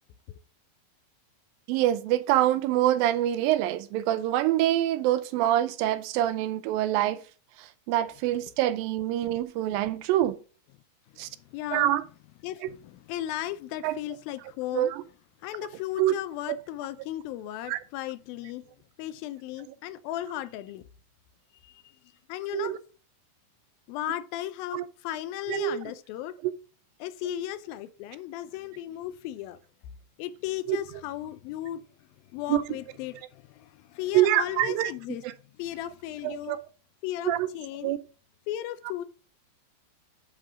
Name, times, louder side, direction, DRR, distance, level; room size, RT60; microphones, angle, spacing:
voice 1, 1.7-7.2 7.6-10.4 11.2-11.3 11.7-12.0 12.6-12.7 13.8-13.9 14.7-15.0 16.0-16.1 17.7-17.8 22.5-22.8 24.7-24.8 25.5-25.8 26.4-26.5 30.7-30.8 32.5-32.6 34.1-34.9 36.2-36.6 37.3-37.5 37.8-38.0, right 13 dB, 80° right, 2.2 m, -25 dB
voice 2, 11.1-11.9 12.4-14.9 15.4-18.6 19.0-20.9 21.6-22.0 22.3-22.7 23.9-26.3 27.0-29.6 30.2-35.2 35.5-36.6 37.0-37.9 38.5-39.0, left 13 dB, 85° left, 2.4 m, -36 dB
9.7 x 3.7 x 4.9 m
omnidirectional pair, 4.2 m